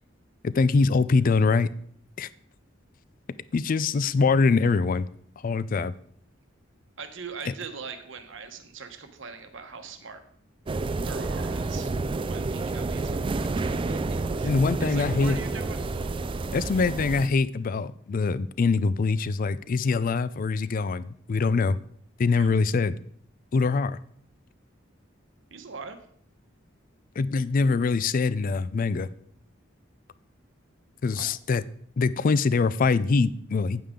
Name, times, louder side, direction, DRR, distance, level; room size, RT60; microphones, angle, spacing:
voice 1, 0.4-1.7 2.2-2.3 3.5-5.1 5.4-5.9 14.4-15.4 16.5-21.8 22.2-23.0 23.5-24.0 27.2-29.1 31.0-31.6 32.0-33.8, left 4 dB, 45° left, 17 dB, 0.4 m, -23 dB
voice 2, 7.0-10.2 11.1-11.9 12.2-13.3 13.7-15.8 22.3-22.5 25.5-26.0 31.1-31.3, right 5 dB, 70° right, 7 dB, 1.1 m, -41 dB
sound 1, 10.7-17.3, right 3 dB, 25° right, 0.3 m, -29 dB
8.9 x 8.5 x 3.7 m, 0.63 s
head